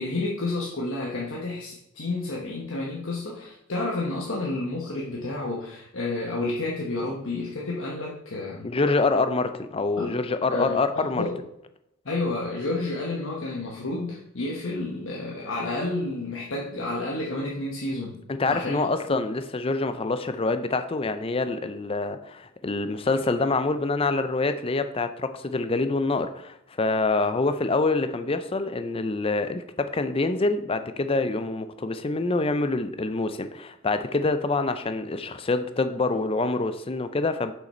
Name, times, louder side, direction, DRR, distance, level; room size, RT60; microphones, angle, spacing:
voice 1, 0.0-8.7 10.0-10.2 10.5-11.4 12.0-18.8 19.1-19.2, left 2 dB, 65° left, 1.1 m, -30 dB
voice 2, 8.6-11.2 18.3-37.5, left 3 dB, 25° left, 0.5 m, -26 dB
6.5 x 5.8 x 4.3 m
head